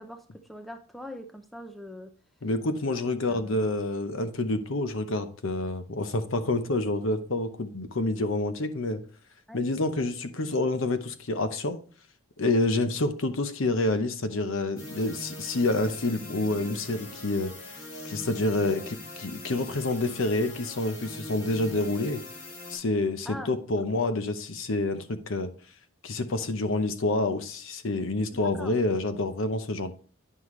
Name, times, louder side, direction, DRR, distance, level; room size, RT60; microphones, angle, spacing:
voice 1, 0.0-2.1 3.2-3.6 9.5-9.7 23.3-23.8 28.3-28.7, left 1 dB, ahead, 0.5 m, -42 dB
voice 2, 2.4-9.0 9.5-11.8 12.4-17.5 18.0-22.2 22.7-25.5 26.0-29.9, left 2 dB, 60° left, 0.8 m, -28 dB
sound 1, 14.8-22.8, left 1 dB, 80° left, 2.3 m, -42 dB
9.8 x 5.5 x 3.1 m
head